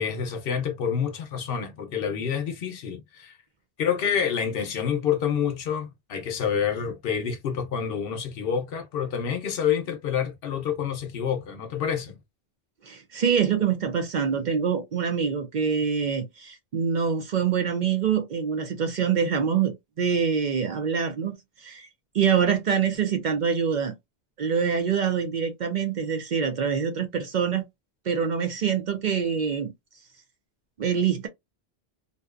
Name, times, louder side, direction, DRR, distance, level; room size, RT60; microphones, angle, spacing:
voice 1, 0.0-3.4 3.8-12.2, left 7 dB, 70° left, 0.8 m, -28 dB
voice 2, 12.8-21.3 21.6-21.9 22.1-23.9 24.4-27.6 28.1-29.7 30.8-31.3, right 7 dB, 55° right, 0.6 m, -25 dB
2.6 x 2.1 x 2.3 m
omnidirectional pair, 1.0 m